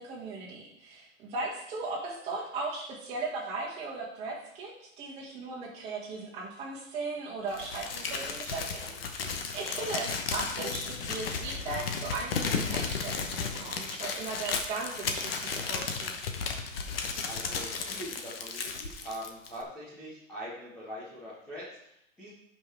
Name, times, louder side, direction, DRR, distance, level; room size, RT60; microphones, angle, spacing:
voice 1, 0.0-4.7 5.0-16.1, right 3 dB, 15° right, -4 dB, 1.8 m, -37 dB
Crumpling crinkling, 7.5-19.6, left 5 dB, 45° left, 1.1 m, -34 dB
voice 2, 17.2-22.3, equal, 5° left, -9 dB, 0.6 m, -43 dB
14.5 x 5.7 x 3.4 m, 0.76 s
hypercardioid pair, 175°, 40 cm